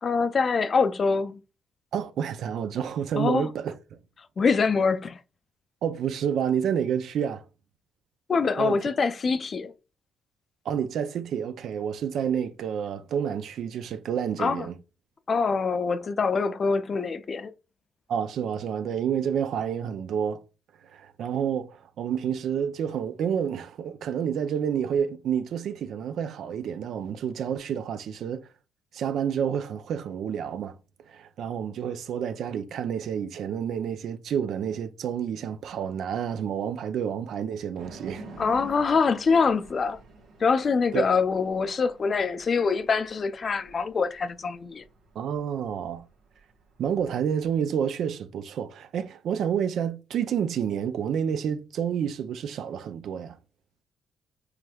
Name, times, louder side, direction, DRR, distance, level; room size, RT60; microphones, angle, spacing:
voice 1, 0.0-1.4 3.2-3.5 4.4-5.2 8.3-9.7 14.4-14.7 15.3-17.5 38.4-40.0 40.4-44.8, left 5 dB, 45° left, 0.4 m, -24 dB
voice 2, 1.9-4.0 5.8-7.4 8.6-8.8 10.7-14.8 18.1-20.4 20.8-28.5 28.9-30.8 31.1-38.2 40.9-41.0 45.2-46.0 46.8-53.4, right 8 dB, 70° right, 0.4 m, -29 dB
sound 1, 37.8-47.6, right 3 dB, 90° right, 1.0 m, -49 dB
4.8 x 3.1 x 2.3 m
cardioid pair, 90°, 0 cm